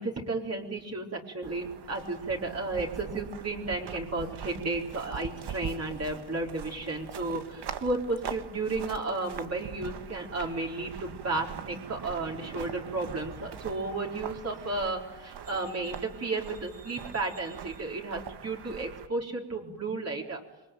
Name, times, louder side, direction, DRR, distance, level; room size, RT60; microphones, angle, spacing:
voice 1, 0.0-20.4, right 2 dB, 35° right, -1 dB, 3.9 m, -33 dB
sound 1, 1.4-19.1, right 8 dB, 70° right, 1.6 m, -43 dB
27.5 x 23.0 x 9.1 m, 1.0 s
wide cardioid pair, 140°, 42 cm